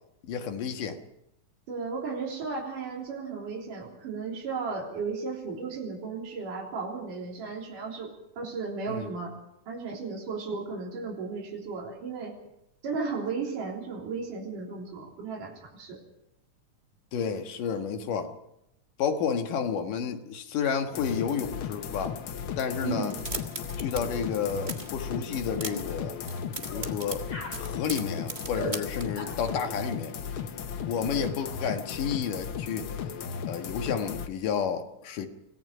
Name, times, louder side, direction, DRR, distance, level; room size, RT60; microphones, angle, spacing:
voice 1, 0.3-1.0 8.9-9.1 17.1-18.4 19.0-22.2 22.6-23.2 23.8-26.2 26.6-27.3 27.5-30.1 30.9-32.9 33.5-35.3, left 7 dB, 90° left, 5 dB, 3.2 m, -31 dB
voice 2, 1.7-9.4 9.7-12.4 12.8-16.0 22.8-23.2, right 4 dB, 85° right, -2 dB, 5.1 m, -35 dB
sound 1, 20.9-34.3, left 7 dB, 60° left, 1.5 m, -36 dB
sound 2, 23.0-24.0 24.3-24.9 25.3-25.9 26.2-29.0, right 3 dB, 25° right, 1.0 m, -38 dB
sound 3, 25.1-25.3 25.7-25.9 26.7-26.9 27.3-27.6 28.6-28.8 29.2-29.4 31.1-31.3, equal, 40° left, 3.9 m, -37 dB
25.0 x 18.0 x 5.8 m, 0.84 s
omnidirectional pair, 3.6 m